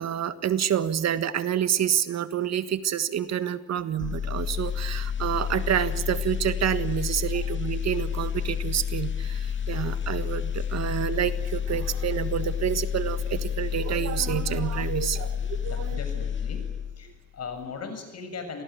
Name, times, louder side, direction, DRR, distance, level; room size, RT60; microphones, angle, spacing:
voice 1, 0.0-16.0, right 9 dB, 60° right, 12 dB, 1.6 m, -28 dB
sound 1, 4.0-17.1 17.4-17.7, left 8 dB, 40° left, 2.1 m, -30 dB
voice 2, 15.7-16.6 17.0-18.6, left 5 dB, 55° left, 7 dB, 6.7 m, -38 dB
27.0 x 19.5 x 9.2 m, 1.1 s
cardioid pair, 90°, 30 cm